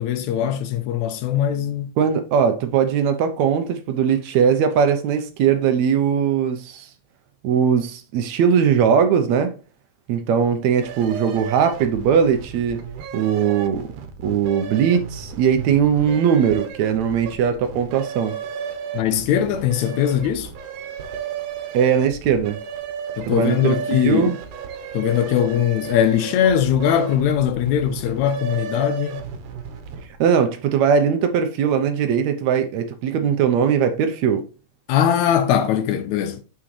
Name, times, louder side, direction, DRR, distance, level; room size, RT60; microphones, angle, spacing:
voice 1, 0.0-1.9 18.9-20.5 23.2-24.3 24.9-29.2 34.9-36.4, left 9 dB, 75° left, 1.9 m, -20 dB
voice 2, 2.0-6.9 7.4-9.5 10.1-12.8 13.1-18.4 21.7-22.6 23.3-24.4 30.2-34.4, right 7 dB, 75° right, 1.9 m, -20 dB
sound 1, 10.8-30.2, right 7 dB, 90° right, 2.5 m, -34 dB
7.1 x 6.1 x 3.2 m
omnidirectional pair, 3.5 m